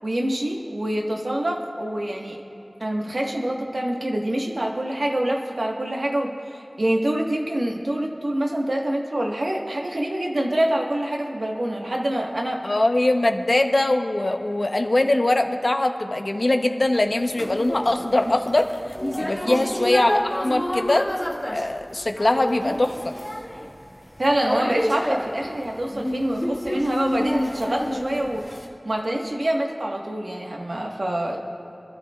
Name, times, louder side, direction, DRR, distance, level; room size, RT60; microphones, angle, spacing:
voice 1, 0.0-2.4 2.8-12.6 19.4-19.7 24.2-28.4 28.8-31.4, right 1 dB, 70° right, 0 dB, 1.5 m, -26 dB
voice 2, 12.6-18.7 19.2-21.1 21.5-23.1, left 2 dB, 60° left, 5 dB, 0.9 m, -22 dB
sound 1, 16.9-28.7, left 1 dB, 20° left, 1.7 m, -29 dB
25.5 x 12.5 x 2.4 m, 2.9 s
wide cardioid pair, 40°, 0 cm